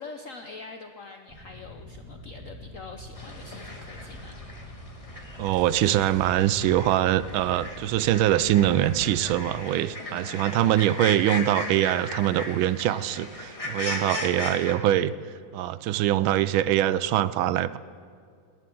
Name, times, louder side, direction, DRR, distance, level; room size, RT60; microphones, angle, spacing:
voice 1, 0.0-4.4 10.0-11.0, left 4 dB, 60° left, 5 dB, 0.9 m, -44 dB
sound 1, 1.3-9.4, left 1 dB, 20° right, 4.0 m, -44 dB
sound 2, 3.1-14.7, left 2 dB, 20° left, 1.4 m, -37 dB
voice 2, 5.4-15.1 15.5-17.8, right 13 dB, 85° right, 16 dB, 1.4 m, -23 dB
19.0 x 19.0 x 3.8 m, 2.3 s
omnidirectional pair, 2.1 m